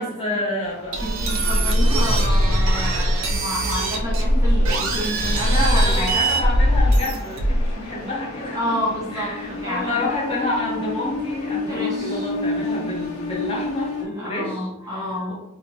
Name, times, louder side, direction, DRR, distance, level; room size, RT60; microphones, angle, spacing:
voice 1, 0.0-1.0 5.3-8.8 9.1-15.3, left 2 dB, 25° left, -4 dB, 0.7 m, -29 dB
sound 1, 0.7-14.0, left 3 dB, 75° left, 0.6 m, -32 dB
sound 2, 0.9-7.7, equal, 70° right, 0.4 m, -20 dB
voice 2, 1.0-6.4 8.5-10.1 11.7-12.3 14.1-15.3, equal, 15° right, -4 dB, 0.5 m, -29 dB
2.7 x 2.1 x 2.7 m, 0.84 s
head